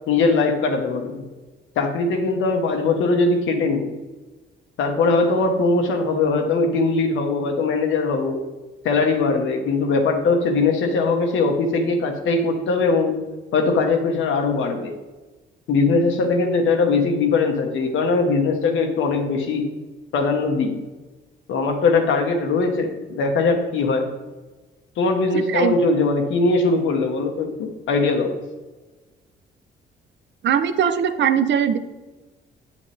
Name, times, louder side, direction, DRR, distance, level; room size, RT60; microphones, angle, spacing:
voice 1, 0.1-1.2 1.7-3.9 4.8-8.4 8.8-13.1 13.5-14.9 15.7-19.6 20.1-20.8 21.5-24.1 25.0-28.3, left 3 dB, 80° left, 4 dB, 1.4 m, -20 dB
voice 2, 25.3-25.7 30.4-31.8, right 8 dB, 65° right, 11 dB, 0.7 m, -20 dB
8.4 x 8.3 x 3.5 m, 1.2 s
cardioid pair, 90°, 20 cm